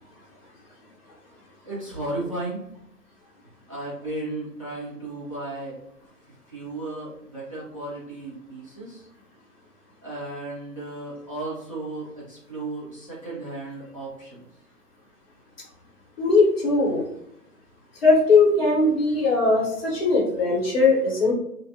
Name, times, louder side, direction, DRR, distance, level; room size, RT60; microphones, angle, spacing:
voice 1, 1.6-2.6 3.7-5.7 6.5-9.0 10.0-14.5, right 2 dB, 20° right, -8 dB, 0.5 m, -34 dB
voice 2, 16.2-17.0 18.0-21.3, left 3 dB, 35° left, -3 dB, 1.0 m, -19 dB
2.5 x 2.1 x 2.6 m, 0.75 s
figure-of-eight pair, 150°, 48 cm